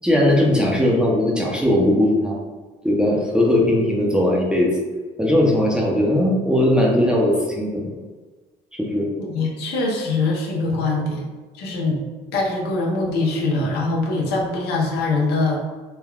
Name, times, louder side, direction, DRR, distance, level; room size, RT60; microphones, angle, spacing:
voice 1, 0.0-2.4 2.8-4.7 5.2-7.8 8.8-9.1, left 1 dB, 5° right, -3 dB, 0.5 m, -18 dB
voice 2, 9.2-11.3 11.6-12.0 12.3-15.6, left 3 dB, 75° left, -2 dB, 0.7 m, -23 dB
3.4 x 2.2 x 2.3 m, 1.3 s
cardioid pair, 110°, 17 cm